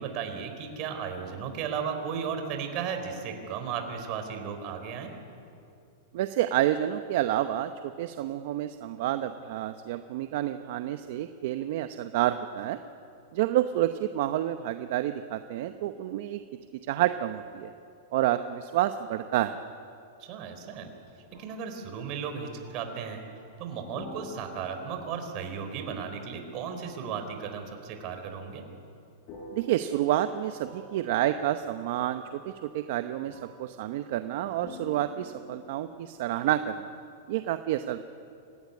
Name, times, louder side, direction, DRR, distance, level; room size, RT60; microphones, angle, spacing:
voice 1, 0.0-5.1 20.2-20.9 21.4-23.2 23.6-28.6, right 6 dB, 40° right, 6 dB, 4.0 m, -35 dB
voice 2, 6.1-7.7 8.0-12.8 13.3-16.4 16.9-17.7 18.1-19.6 29.5-36.9 37.3-38.0, right 13 dB, 55° right, 9 dB, 0.9 m, -29 dB
sound 1, 21.1-23.6 23.9-27.1 29.3-37.4, left 1 dB, 40° left, 6.6 m, -50 dB
26.0 x 17.0 x 9.6 m, 2.6 s
supercardioid pair, 150°, 0 cm